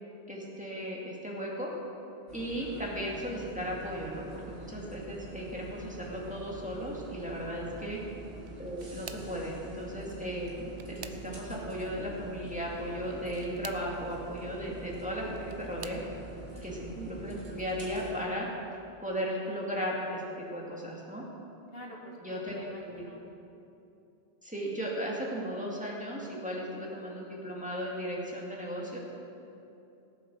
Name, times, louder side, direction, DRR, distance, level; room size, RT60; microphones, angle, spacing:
voice 1, 0.3-1.7 2.3-8.0 8.6-16.0 16.6-18.5 19.0-20.2 20.5-21.2 22.2-22.6 22.9-23.0 24.4-29.0, equal, 5° right, -4 dB, 2.2 m, -36 dB
sound 1, 2.3-18.2, right 2 dB, 65° right, 2.3 m, -45 dB
voice 2, 7.4-8.0 16.5-16.9 21.7-23.2, left 1 dB, 65° left, -1 dB, 1.8 m, -49 dB
sound 2, 8.4-9.4 10.4-11.6 13.2-13.9 15.0-16.1 16.8-17.2 17.6-17.7 19.1-19.2, right 8 dB, 85° right, 1.0 m, -48 dB
18.0 x 7.9 x 6.3 m, 2.8 s
omnidirectional pair, 1.1 m